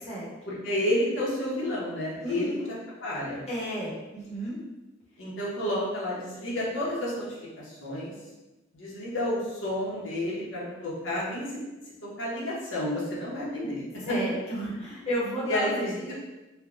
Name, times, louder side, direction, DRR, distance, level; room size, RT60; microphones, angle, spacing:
voice 1, 0.5-2.5 3.0-3.4 5.2-8.1 8.7-11.4 12.0-13.8 15.4-15.8 16.1-16.2, left 1 dB, 90° left, -6 dB, 0.9 m, -30 dB
voice 2, 2.2-2.7 3.5-4.6 14.1-16.1, equal, 35° left, -7 dB, 0.8 m, -32 dB
3.3 x 2.2 x 2.4 m, 1.1 s
head